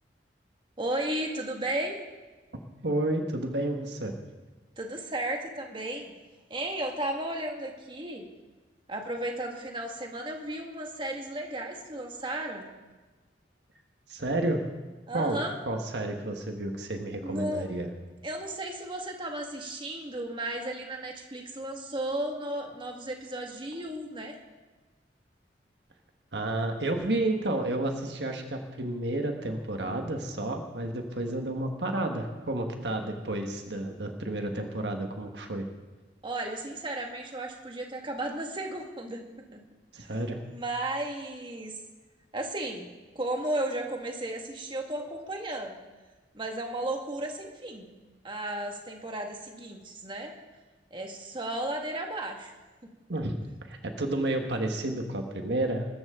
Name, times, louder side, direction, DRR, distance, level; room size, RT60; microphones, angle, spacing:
voice 1, 0.8-2.0 4.8-6.1 6.5-8.3 8.9-12.7 15.1-15.5 17.2-17.7 18.2-24.4 36.2-39.2 39.5-39.6 40.5-41.7 42.3-42.9 43.2-45.8 46.3-47.9 48.2-50.3 50.9-52.5, right 1 dB, 30° right, 2 dB, 1.9 m, -34 dB
voice 2, 2.8-4.1 14.1-14.6 15.1-17.9 26.3-35.6 39.9-40.4 53.1-55.9, right 1 dB, 70° right, 4 dB, 1.5 m, -31 dB
20.5 x 13.5 x 3.8 m, 1.2 s
head